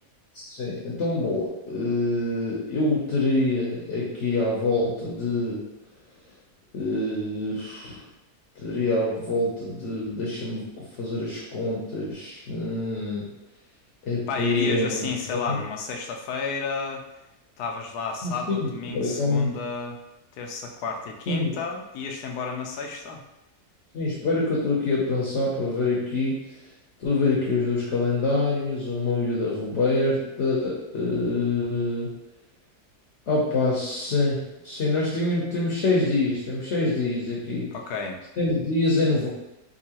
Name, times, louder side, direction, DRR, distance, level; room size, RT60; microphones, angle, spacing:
voice 1, 0.3-5.6 6.7-8.0 8.6-13.3 14.0-15.0 15.3-15.6 18.2-19.6 21.3-21.5 23.9-26.5 27.0-32.1 33.3-37.7 38.4-39.3, left 2 dB, 55° left, -5 dB, 1.0 m, -26 dB
voice 2, 14.3-17.1 17.6-20.0 20.4-23.2 37.7-38.2, left 5 dB, 80° left, 2 dB, 1.1 m, -32 dB
3.7 x 2.7 x 2.8 m, 0.94 s
omnidirectional pair, 1.6 m